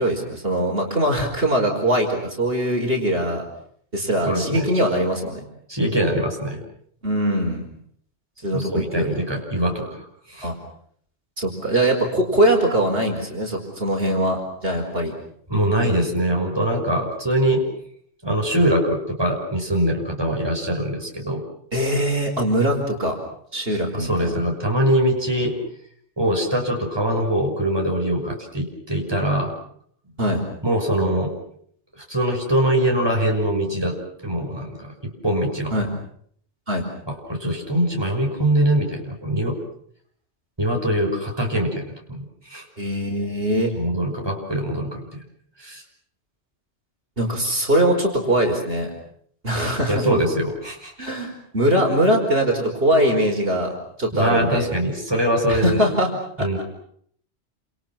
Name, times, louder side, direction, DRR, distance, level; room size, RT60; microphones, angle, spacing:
voice 1, 0.0-3.4 3.9-5.4 7.0-7.6 8.4-9.1 10.4-10.5 11.4-15.1 21.7-23.1 23.5-24.4 30.2-30.4 35.7-35.9 36.7-36.9 42.8-43.7 47.2-48.9 49.4-50.2 51.0-54.7 55.5-56.1 56.4-56.6, right 1 dB, 55° right, 1 dB, 5.2 m, -22 dB
voice 2, 4.2-4.7 5.7-6.6 8.4-10.5 15.5-17.7 18.2-21.4 23.9-25.6 26.2-29.5 30.6-31.3 32.0-35.7 37.1-39.6 40.6-42.6 43.8-45.0 45.6-45.8 49.9-51.1 54.1-55.8 56.4-56.6, right 1 dB, 20° right, 0 dB, 6.2 m, -23 dB
30.0 x 27.5 x 6.1 m, 0.64 s
omnidirectional pair, 1.1 m